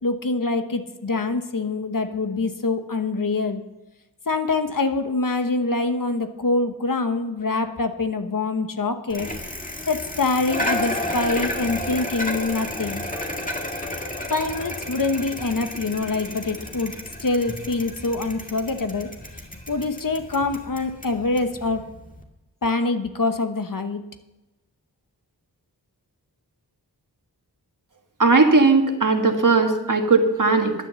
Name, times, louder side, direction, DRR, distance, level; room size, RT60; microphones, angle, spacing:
voice 1, 0.0-3.6 4.3-9.3 9.9-13.0 14.3-17.0 17.2-19.1 19.7-21.8 22.6-24.0, left 3 dB, 55° left, 7 dB, 1.1 m, -25 dB
Bicycle, 9.1-22.2, left 1 dB, 20° left, 1.9 m, -32 dB
voice 2, 28.2-30.7, right 3 dB, 50° right, 5 dB, 1.6 m, -18 dB
11.0 x 9.9 x 6.9 m, 1.0 s
wide cardioid pair, 65°, 39 cm